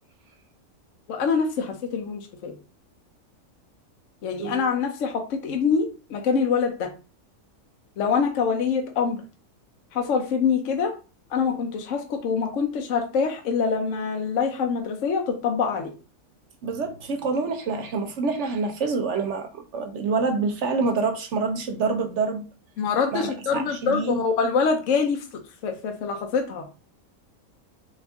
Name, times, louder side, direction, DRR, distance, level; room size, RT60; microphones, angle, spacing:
voice 1, 1.1-2.6 4.2-6.9 8.0-9.2 9.9-11.0 11.3-15.9 22.8-25.3 25.6-26.7, left 5 dB, 65° left, 1.0 m, -25 dB
voice 2, 4.4-4.7 16.6-22.4 23.1-24.2, right 4 dB, 65° right, 0.8 m, -27 dB
4.3 x 2.5 x 3.5 m
omnidirectional pair, 1.5 m